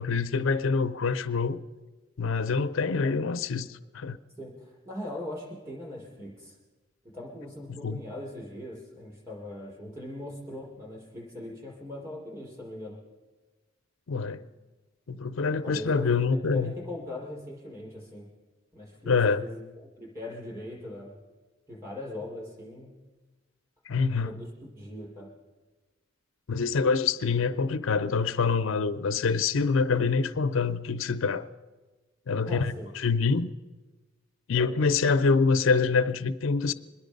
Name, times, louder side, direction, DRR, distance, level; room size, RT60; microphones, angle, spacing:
voice 1, 0.0-1.6 2.2-4.2 7.8-8.0 14.1-14.4 15.1-16.7 19.1-19.4 23.9-24.3 26.5-31.5 32.3-33.5 34.5-36.7, left 4 dB, 80° left, 0.5 m, -25 dB
voice 2, 4.4-6.6 7.1-13.0 15.6-18.3 18.7-21.2 21.7-22.9 24.2-25.3 32.4-32.9, left 1 dB, 20° right, 5.4 m, -40 dB
24.5 x 10.5 x 5.3 m
head